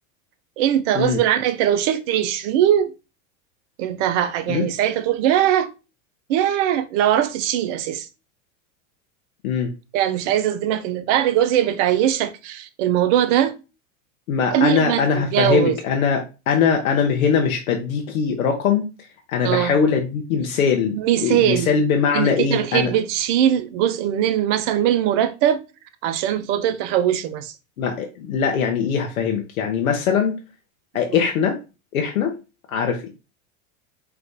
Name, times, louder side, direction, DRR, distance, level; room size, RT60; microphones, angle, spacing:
voice 1, 0.6-2.9 3.8-5.7 6.3-8.1 9.9-13.5 14.5-15.8 19.4-19.8 20.9-21.7 22.1-25.6 26.0-27.5, right 11 dB, 60° right, 0.8 m, -21 dB
voice 2, 14.3-18.9 19.3-22.9 27.8-30.4 30.9-31.6 31.9-32.4 32.7-33.1, left 6 dB, 85° left, 1.0 m, -21 dB
4.6 x 2.5 x 3.5 m
hypercardioid pair, 105°, 41 cm